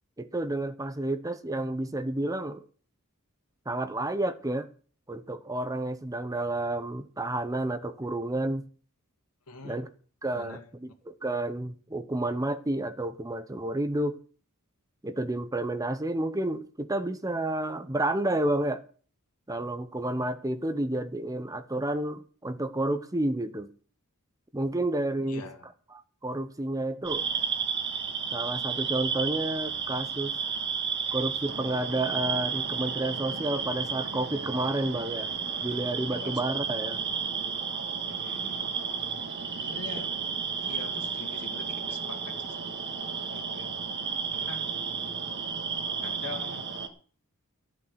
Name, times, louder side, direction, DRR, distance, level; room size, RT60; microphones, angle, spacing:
voice 1, 0.2-2.7 3.7-4.7 5.1-8.6 9.6-9.9 10.2-14.2 15.0-18.8 19.5-23.7 24.5-25.4 25.9-27.3 28.3-30.3 31.1-35.3 35.6-37.0, right 1 dB, 15° right, 0.8 m, -30 dB
voice 2, 9.5-9.8 10.3-10.7 25.3-25.7 36.1-36.4 38.1-38.7 39.6-40.2 40.6-42.8 43.3-43.7 44.3-44.8 46.0-46.7, left 3 dB, 85° left, 2.2 m, -44 dB
sound 1, 27.0-46.9, right 6 dB, 50° right, 1.6 m, -32 dB
13.5 x 8.7 x 6.3 m
head